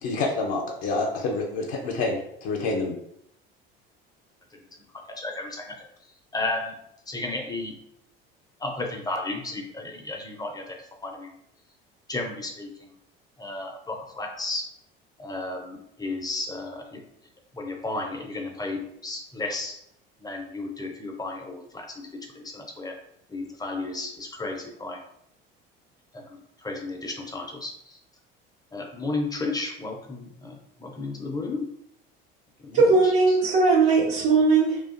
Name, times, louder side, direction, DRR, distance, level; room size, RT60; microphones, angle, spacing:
voice 1, 0.0-3.0, left 3 dB, 60° left, -1 dB, 0.5 m, -27 dB
voice 2, 5.2-5.8 6.3-6.8 7.1-7.8 8.6-11.4 12.1-12.9 13.4-14.7 15.2-17.0 17.5-19.8 20.2-23.0 23.3-25.0 26.1-28.0 28.7-31.7 32.6-33.1, left 2 dB, 15° left, 2 dB, 0.5 m, -33 dB
voice 3, 32.7-34.8, right 3 dB, 80° right, -10 dB, 0.9 m, -19 dB
2.4 x 2.2 x 2.4 m, 0.74 s
hypercardioid pair, 70°, 29 cm